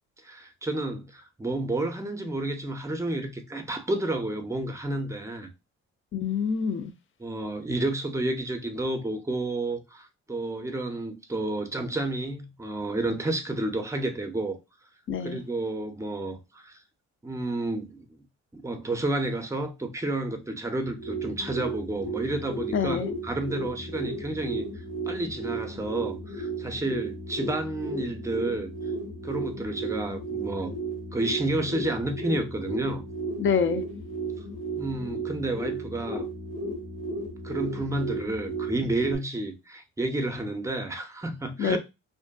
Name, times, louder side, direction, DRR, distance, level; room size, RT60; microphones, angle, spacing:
voice 1, 0.2-5.5 7.2-14.6 15.2-16.8 17.2-18.1 18.5-24.7 25.0-28.7 29.2-30.7 31.1-33.0 34.8-36.3 37.4-41.8, right 2 dB, 10° right, 0.5 m, -30 dB
voice 2, 6.1-6.9 15.1-15.4 22.7-23.1 33.4-33.8 41.6-41.8, left 6 dB, 45° left, 0.5 m, -26 dB
sound 1, 20.8-39.2, right 2 dB, 80° left, 1.2 m, -34 dB
2.6 x 2.5 x 2.3 m
cardioid pair, 90°, 30 cm